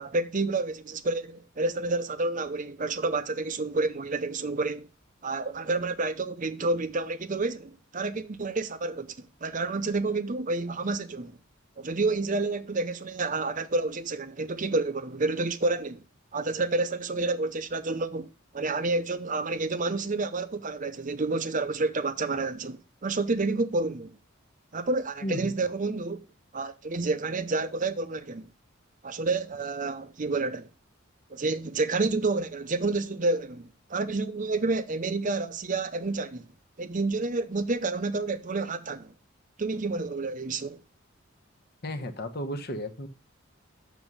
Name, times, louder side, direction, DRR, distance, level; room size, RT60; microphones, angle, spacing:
voice 1, 0.0-4.9 5.2-11.4 11.8-16.0 16.3-24.2 24.7-26.3 26.5-28.5 29.0-30.7 31.3-36.5 36.8-39.1 39.6-40.8, right 3 dB, 40° right, 0.7 m, -29 dB
voice 2, 25.2-25.5 41.8-43.1, equal, 50° left, 1.1 m, -33 dB
7.1 x 6.2 x 5.4 m
head